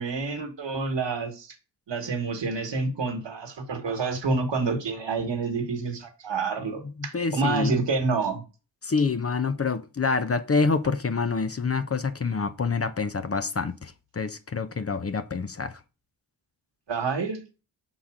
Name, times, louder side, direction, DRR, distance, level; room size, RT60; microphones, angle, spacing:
voice 1, 0.0-1.5 1.9-8.4 16.9-17.4, right 4 dB, 75° right, 1.5 m, -28 dB
voice 2, 6.8-7.8 8.8-15.8, left 4 dB, 35° left, 0.7 m, -27 dB
5.8 x 4.0 x 4.9 m
cardioid pair, 50°, 44 cm